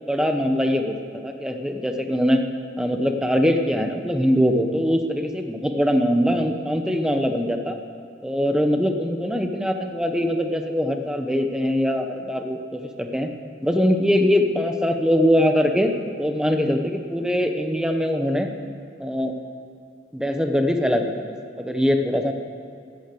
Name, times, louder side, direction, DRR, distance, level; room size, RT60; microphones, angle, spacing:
voice 1, 0.1-0.9 1.2-2.4 2.8-7.8 8.2-13.3 13.6-18.5 19.0-19.3 20.1-22.3, equal, 5° right, 5 dB, 0.9 m, -22 dB
13.5 x 8.7 x 7.7 m, 2.4 s
head